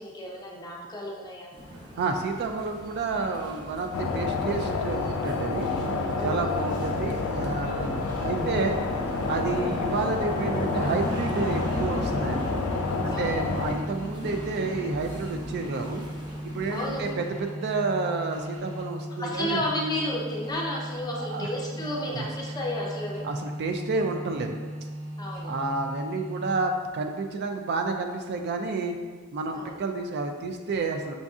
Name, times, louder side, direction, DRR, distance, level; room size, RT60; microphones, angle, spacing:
voice 1, 0.0-1.5 6.2-6.6 13.1-13.4 16.7-17.1 19.2-23.3 25.2-25.5 29.5-29.8, left 1 dB, 20° left, -2 dB, 0.5 m, -32 dB
sound 1, 1.5-17.1, equal, 20° right, 0.7 m, -38 dB
voice 2, 2.0-5.7 6.2-8.8 9.3-12.6 13.0-16.0 16.4-19.6 21.1-22.3 23.2-24.5 25.4-29.0 29.3-31.1, right 3 dB, 50° right, 4 dB, 0.3 m, -30 dB
sound 2, 3.9-13.7, left 3 dB, 70° left, 0.3 m, -29 dB
sound 3, 10.8-26.9, right 1 dB, 85° right, 0.7 m, -38 dB
6.0 x 2.6 x 2.3 m, 1.5 s
head